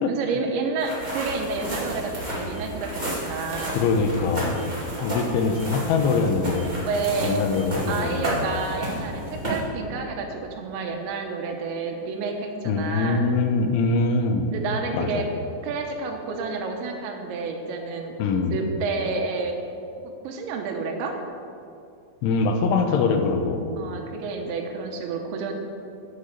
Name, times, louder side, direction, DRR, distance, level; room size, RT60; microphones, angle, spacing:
voice 1, 0.1-3.8 6.8-7.4 7.9-13.2 14.5-15.3 15.6-18.1 18.5-19.6 20.0-21.2 23.8-25.5, right 4 dB, 75° right, 3 dB, 3.0 m, -30 dB
sound 1, 0.8-9.6, right 1 dB, 40° right, 0.6 m, -33 dB
sound 2, 1.0-10.1, left 1 dB, 60° left, 3.3 m, -39 dB
voice 2, 3.7-4.6 5.0-6.7 7.2-8.4 12.7-14.5 14.9-15.3 18.2-18.6 22.2-23.6, left 4 dB, 80° left, 5 dB, 3.2 m, -23 dB
10.0 x 7.3 x 6.5 m, 2.6 s
omnidirectional pair, 5.5 m